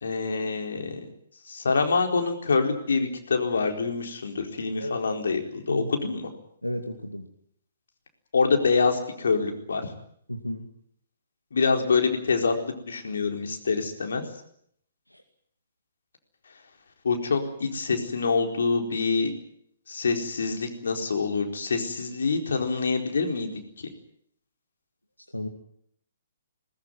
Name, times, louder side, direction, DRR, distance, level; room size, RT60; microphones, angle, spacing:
voice 1, 0.0-1.0 1.5-6.3 8.3-9.9 11.5-14.2 17.0-19.3 19.9-23.5, left 4 dB, 60° left, 4 dB, 4.4 m, -26 dB
voice 2, 6.6-7.3 10.3-10.7 15.1-15.2 25.3-25.5, equal, 85° left, 5 dB, 2.4 m, -32 dB
21.0 x 20.0 x 9.5 m, 0.68 s
figure-of-eight pair, 125°, 0 cm